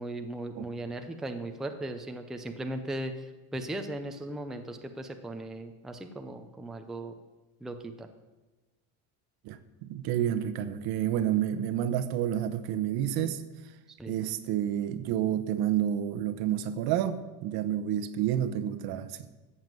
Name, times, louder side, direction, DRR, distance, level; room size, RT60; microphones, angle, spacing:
voice 1, 0.0-3.1 3.5-7.1 7.6-8.1 14.0-14.1, right 1 dB, ahead, 5 dB, 0.5 m, -37 dB
voice 2, 9.4-13.4 14.1-19.3, right 10 dB, 60° right, 12 dB, 1.1 m, -29 dB
14.0 x 7.9 x 7.5 m, 1.2 s
cardioid pair, 175°, 41 cm